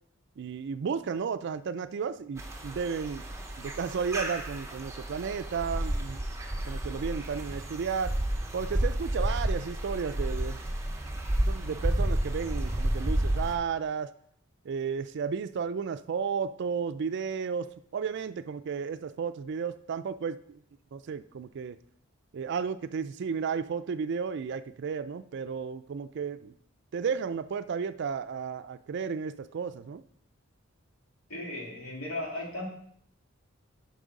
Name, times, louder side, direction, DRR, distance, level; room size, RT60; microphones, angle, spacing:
voice 1, 0.4-3.3 3.6-6.2 6.7-8.2 8.5-10.6 11.4-14.1 14.6-20.6 20.9-21.8 22.3-26.5 26.9-30.0, right 6 dB, 55° right, 13 dB, 0.4 m, -33 dB
sound 1, 2.4-13.6, right 1 dB, 15° right, 0.8 m, -31 dB
voice 2, 31.3-32.7, left 1 dB, 85° left, -2 dB, 2.2 m, -36 dB
6.2 x 5.4 x 5.2 m, 0.66 s
head